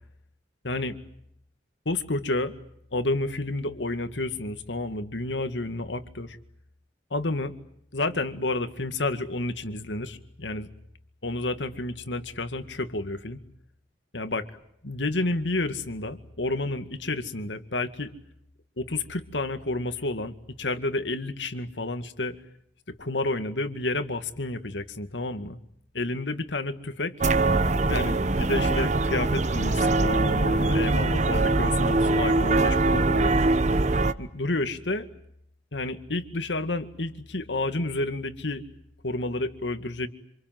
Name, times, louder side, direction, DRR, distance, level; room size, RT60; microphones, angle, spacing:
voice 1, 0.6-1.0 1.9-2.6 2.9-6.4 7.1-7.5 7.9-10.7 11.2-13.4 14.1-14.5 14.8-18.1 18.8-22.4 23.0-25.6 25.9-27.1 27.9-33.4 34.2-35.1 35.7-38.6 39.0-40.1, left 2 dB, 85° left, 9 dB, 2.2 m, -30 dB
sound 1, 27.2-34.1, right 2 dB, 40° right, 1.1 m, -23 dB
27.0 x 27.0 x 7.8 m, 0.74 s
head